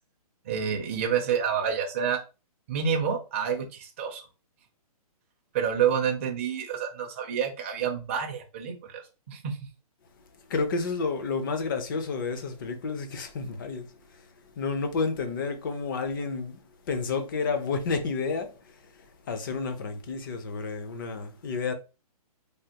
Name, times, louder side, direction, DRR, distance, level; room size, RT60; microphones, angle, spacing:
voice 1, 0.4-2.2 2.7-4.3 5.5-9.0 9.3-9.6, right 7 dB, 20° right, 0.4 m, -28 dB
voice 2, 10.5-14.3 14.6-21.7, left 4 dB, 35° left, 0.5 m, -31 dB
3.4 x 2.3 x 2.8 m
hypercardioid pair, 165°, 20 cm